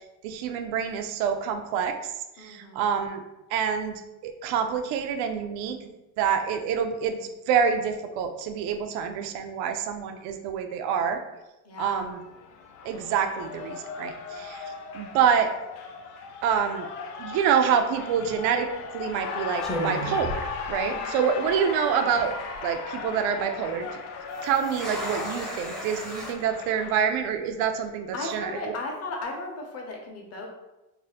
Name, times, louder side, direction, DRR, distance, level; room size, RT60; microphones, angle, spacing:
voice 1, 0.2-1.9 2.4-3.2 3.5-5.8 6.2-7.2 7.5-11.2 11.8-12.2 12.8-14.6 14.9-15.5 16.4-16.9 17.2-22.4 22.6-24.0 24.4-28.7, right 7 dB, 55° right, 6 dB, 0.5 m, -27 dB
voice 2, 2.4-2.9 11.6-12.1 20.9-21.5 28.1-30.5, left 3 dB, 30° left, 1 dB, 0.8 m, -36 dB
Cheering, 11.9-27.1, left 5 dB, 90° left, 0.6 m, -37 dB
sound 1, 18.1-18.4 19.1-19.3 19.6-21.2 21.5-21.6 22.2-22.6 24.3-26.3, right 1 dB, ahead, 0.6 m, -35 dB
2.7 x 2.0 x 4.0 m, 0.98 s
supercardioid pair, 120°, 46 cm